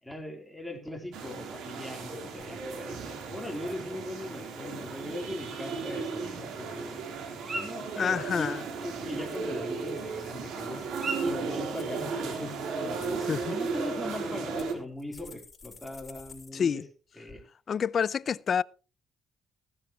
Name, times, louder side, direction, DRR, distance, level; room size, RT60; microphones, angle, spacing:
voice 1, 0.0-7.0 7.4-10.8 11.2-16.8 17.2-17.4, left 1 dB, ahead, 3.8 m, -40 dB
sound 1, 1.1-14.7, right 4 dB, 85° right, 3.8 m, -35 dB
sound 2, 2.4-2.7 3.2-3.8 4.2-4.6 9.1-10.0 10.6-11.2 11.7-12.4 12.8-13.1 13.9-14.0 14.6-16.5 16.8-16.9 17.3-17.4, left 5 dB, 35° left, 6.1 m, -53 dB
sound 3, 4.8-11.7, right 3 dB, 35° right, 3.6 m, -43 dB
voice 2, 8.0-8.6 13.2-13.6 16.5-16.8 17.7-18.6, left 7 dB, 50° left, 0.5 m, -28 dB
16.0 x 13.0 x 3.1 m
cardioid pair, 90°, 0 cm